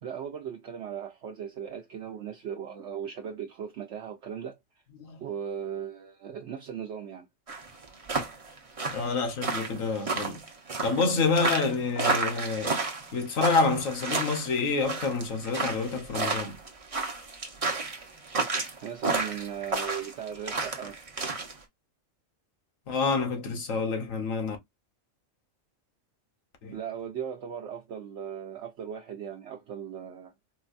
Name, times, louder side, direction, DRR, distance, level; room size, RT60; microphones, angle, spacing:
voice 1, 0.0-4.6 5.2-7.3 18.8-21.0 26.7-30.3, right 8 dB, 65° right, 1.0 m, -37 dB
sound 1, 7.5-21.5, right 3 dB, 30° right, 0.8 m, -31 dB
voice 2, 8.9-10.4 10.8-12.8 13.1-16.6 22.9-24.6 26.6-26.8, left 4 dB, 85° left, 1.5 m, -28 dB
4.6 x 2.2 x 2.5 m
omnidirectional pair, 1.4 m